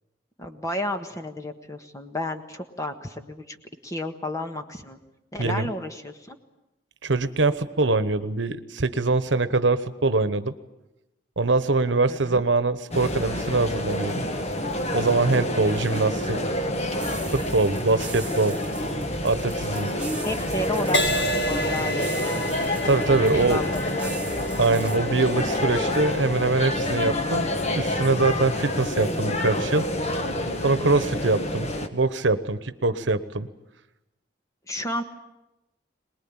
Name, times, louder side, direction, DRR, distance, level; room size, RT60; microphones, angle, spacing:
voice 1, 0.4-3.6 3.8-5.0 5.3-6.4 12.1-12.4 20.2-22.4 23.4-24.1 31.0-31.4 34.7-35.0, left 1 dB, 15° left, 6 dB, 1.5 m, -32 dB
voice 2, 7.0-10.5 11.4-14.2 14.9-16.4 17.3-18.6 19.2-19.9 22.8-23.6 24.6-29.9 30.6-33.5, right 3 dB, 75° right, 13 dB, 1.1 m, -23 dB
sound 1, 12.9-31.9, left 1 dB, 35° left, 1.6 m, -28 dB
sound 2, 17.0-25.0, right 3 dB, 5° right, 3.0 m, -39 dB
Crash cymbal, 20.9-28.6 29.2-29.5, equal, 65° left, 1.6 m, -32 dB
23.0 x 20.5 x 8.8 m, 0.95 s
head